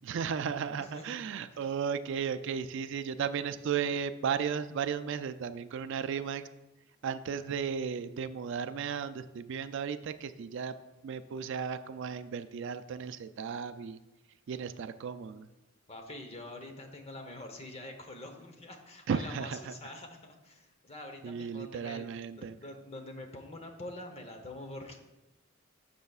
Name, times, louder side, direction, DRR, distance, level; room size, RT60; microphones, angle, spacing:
voice 1, 0.0-6.5 7.0-10.7 11.0-14.0 14.5-15.5 19.1-19.7 21.2-22.6, right 7 dB, 60° right, 11 dB, 0.3 m, -35 dB
voice 2, 0.8-1.1 1.5-1.7 15.9-22.1 22.4-25.0, left 1 dB, 30° left, 4 dB, 0.9 m, -45 dB
12.0 x 6.8 x 2.4 m, 1.0 s
head